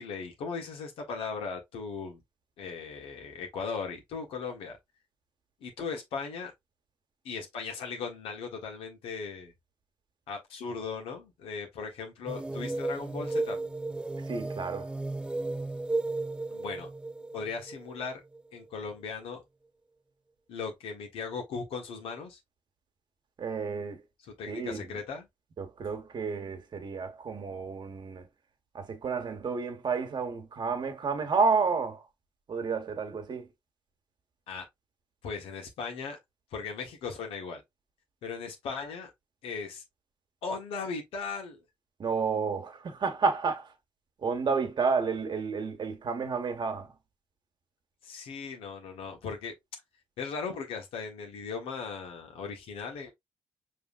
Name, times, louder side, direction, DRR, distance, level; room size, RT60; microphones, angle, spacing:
voice 1, 0.0-2.2 2.6-4.8 5.6-6.5 7.2-9.5 10.3-13.6 16.5-16.9 17.3-18.2 18.5-19.4 20.5-22.4 24.4-25.3 34.5-34.6 35.2-36.2 36.5-37.6 38.2-39.1 39.4-39.8 40.4-41.6 48.0-49.5 50.2-53.1, left 5 dB, 80° left, 1.4 m, -38 dB
sound 1, 12.3-18.7, right 2 dB, 10° right, 0.4 m, -34 dB
voice 2, 14.2-14.9 23.4-24.0 24.5-25.0 25.6-28.3 28.7-32.0 32.5-33.5 42.0-43.7 44.2-46.9, right 5 dB, 55° right, 1.4 m, -30 dB
5.5 x 3.4 x 2.5 m
supercardioid pair, 60°, 9 cm